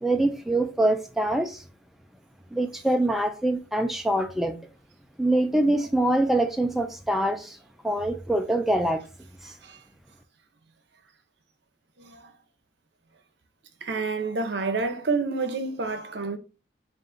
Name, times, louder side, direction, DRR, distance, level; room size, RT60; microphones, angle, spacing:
voice 1, 0.0-1.6 2.5-4.6 5.2-7.6 7.8-9.0 9.4-9.5, right 1 dB, ahead, 0.3 m, -24 dB
voice 2, 12.0-12.3 13.8-16.4, right 4 dB, 70° right, 0.7 m, -29 dB
4.0 x 2.5 x 3.7 m
head